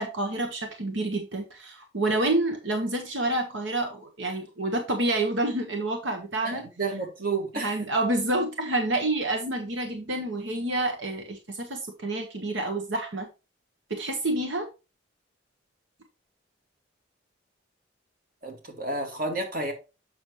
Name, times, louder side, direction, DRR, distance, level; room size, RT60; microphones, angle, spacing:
voice 1, 0.0-6.6 7.5-13.3 13.9-14.7, right 2 dB, 75° right, 1.3 m, -28 dB
voice 2, 6.4-7.8 18.4-19.7, right 3 dB, 45° right, 1.9 m, -31 dB
7.3 x 6.1 x 3.1 m
head